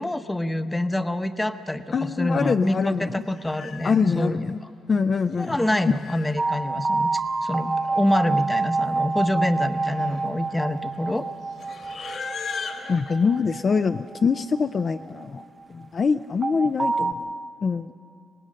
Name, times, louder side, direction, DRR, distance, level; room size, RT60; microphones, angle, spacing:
voice 1, 0.0-4.4 5.4-7.1 7.4-11.3, left 1 dB, 10° left, 9 dB, 0.9 m, -26 dB
voice 2, 1.9-3.2 3.8-4.6 4.9-5.9 12.1-12.2 12.9-15.4 15.7-17.3 17.6-17.9, left 5 dB, 40° left, 8 dB, 0.4 m, -24 dB
Livestock farm animals working animals, 2.7-2.9 3.3-4.2 5.1-6.4 7.4-7.5 7.7-8.2 8.5-8.7 9.4-13.0, left 5 dB, 60° left, 2.1 m, -39 dB
sound 1, 6.4-15.4 16.4-17.1, right 3 dB, 25° right, 0.8 m, -28 dB
25.0 x 19.0 x 6.5 m, 2.5 s
cardioid pair, 90°, 0 cm